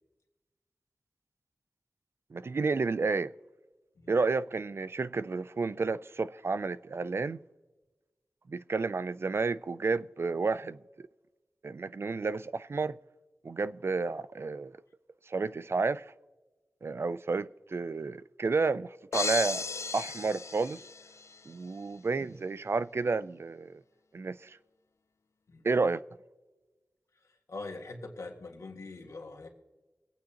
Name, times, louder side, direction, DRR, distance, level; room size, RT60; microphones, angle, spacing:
voice 1, 2.3-3.3 4.1-7.4 8.5-10.8 11.6-13.0 13.4-14.7 15.3-16.0 16.8-19.6 19.9-20.8 21.5-23.8 24.1-24.6 25.6-26.0, right 4 dB, 55° right, 0.3 m, -31 dB
sound 1, 19.1-21.4, left 4 dB, 65° left, 0.4 m, -35 dB
voice 2, 27.5-29.5, left 3 dB, 90° left, 1.7 m, -43 dB
23.0 x 8.8 x 2.9 m
wide cardioid pair, 85°, 5 cm